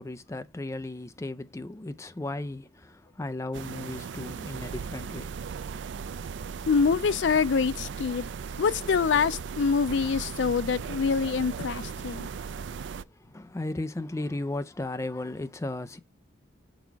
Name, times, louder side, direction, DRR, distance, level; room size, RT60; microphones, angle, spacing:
voice 1, 0.0-5.3 13.0-16.0, left 2 dB, 15° left, 0.4 m, -35 dB
sound 1, 3.5-13.0, right 6 dB, 70° right, 0.4 m, -37 dB
voice 2, 6.7-8.2 8.6-12.3, left 5 dB, 70° left, 0.4 m, -25 dB
5.7 x 4.1 x 4.6 m
head